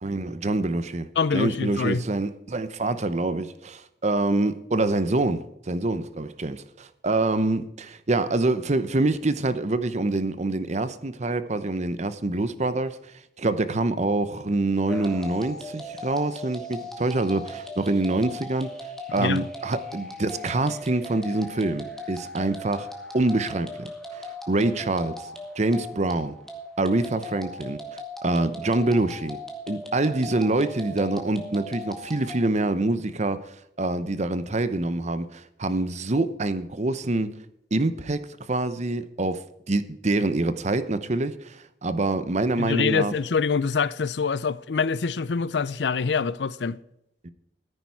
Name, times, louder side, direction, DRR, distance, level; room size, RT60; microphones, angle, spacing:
voice 1, 0.0-13.0 13.4-18.7 19.1-23.9 24.1-25.3 25.6-26.3 26.8-29.4 29.7-37.4 37.7-43.1 47.2-47.3, right 2 dB, 40° right, 0.8 m, -26 dB
voice 2, 1.2-2.0 19.2-19.4 42.6-46.8, left 5 dB, 75° left, 0.5 m, -25 dB
sound 1, 14.9-32.4, left 1 dB, 5° left, 1.9 m, -38 dB
14.0 x 10.0 x 4.7 m
head